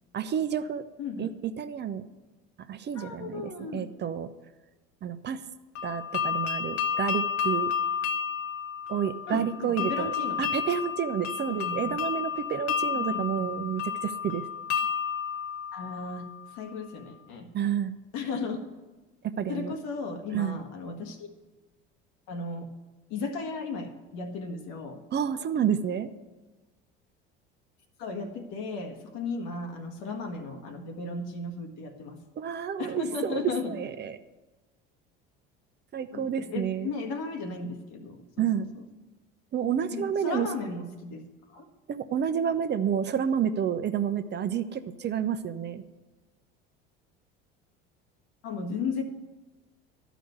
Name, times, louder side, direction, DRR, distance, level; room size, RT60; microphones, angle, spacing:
voice 1, 0.1-0.8 1.2-2.0 2.7-4.3 5.0-5.4 5.8-7.7 8.9-10.1 10.4-14.5 17.5-18.0 19.2-19.7 20.3-20.6 25.1-26.1 32.4-33.4 33.6-34.2 35.9-36.9 38.4-38.7 39.5-40.5 41.9-45.8, right 8 dB, 35° right, 10 dB, 0.7 m, -29 dB
voice 2, 2.9-3.9 9.3-10.5 11.5-11.9 12.9-13.7 15.7-16.3 16.5-17.5 18.1-18.6 19.5-21.3 22.3-22.7 23.1-25.0 28.0-32.2 32.8-33.8 36.1-38.6 39.9-41.7 48.4-49.0, left 4 dB, 70° left, 4 dB, 1.5 m, -35 dB
sound 1, 5.8-16.6, left 7 dB, 55° left, 0.9 m, -31 dB
12.0 x 5.1 x 7.9 m, 1.2 s
hypercardioid pair, 80°, 29 cm